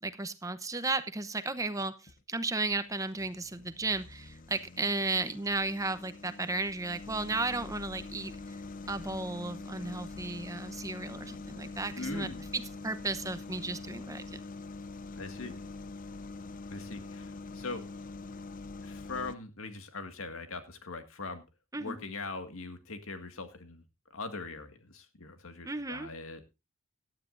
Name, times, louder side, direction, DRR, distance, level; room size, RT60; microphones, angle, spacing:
voice 1, 0.0-8.6 8.9-14.4 21.7-22.0 25.6-26.1, right 3 dB, 15° right, 12 dB, 0.8 m, -34 dB
sound 1, 1.6-2.2 2.8-19.4, left 3 dB, 40° left, 0.6 m, -44 dB
voice 2, 12.0-12.5 15.1-15.6 16.7-17.8 18.8-21.4 21.8-23.8 24.1-26.5, left 3 dB, 85° left, 8 dB, 2.0 m, -41 dB
17.5 x 12.0 x 2.6 m, 0.26 s
head